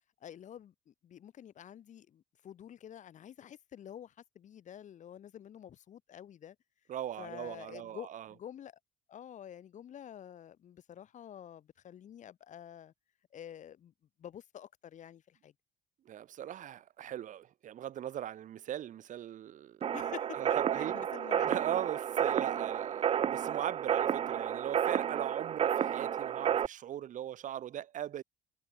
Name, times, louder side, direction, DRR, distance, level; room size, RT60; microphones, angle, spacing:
voice 1, 0.2-6.6 7.2-8.8 9.1-12.9 13.3-13.9 14.2-15.5 19.9-20.4 20.8-21.5, left 10 dB, 55° left, 7.6 m, -48 dB
voice 2, 6.9-8.3 16.0-19.9 20.3-20.9 21.5-28.2, right 11 dB, 60° right, 2.7 m, -39 dB
sound 1, 19.8-26.7, right 9 dB, 40° right, 0.5 m, -31 dB
cardioid pair, 90°, 15 cm